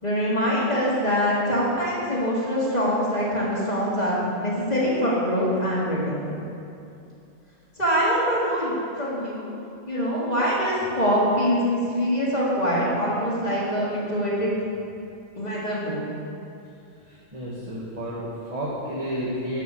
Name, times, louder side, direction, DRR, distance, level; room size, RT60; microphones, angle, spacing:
voice 1, 0.0-6.4 7.8-9.5 9.9-14.5 15.4-16.0, equal, 25° left, -6 dB, 3.2 m, -24 dB
voice 2, 17.0-19.6, equal, 25° right, -6 dB, 1.8 m, -31 dB
11.5 x 8.4 x 7.1 m, 2.6 s
omnidirectional pair, 1.6 m